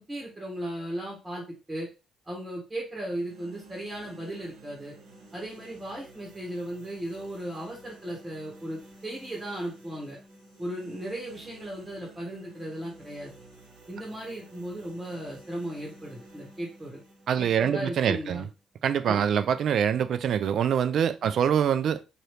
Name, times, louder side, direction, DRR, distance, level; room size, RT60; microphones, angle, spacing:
voice 1, 0.0-1.9 2.3-4.9 5.3-10.2 10.6-13.3 13.9-17.0 17.4-18.5 19.1-19.3 21.2-21.3, right 1 dB, 20° right, 1.3 m, -36 dB
sound 1, 2.9-19.0, right 2 dB, 80° right, 1.3 m, -52 dB
voice 2, 17.3-18.4 18.8-22.0, right 8 dB, 65° right, 0.3 m, -25 dB
2.9 x 2.6 x 3.2 m
cardioid pair, 100°, 0 cm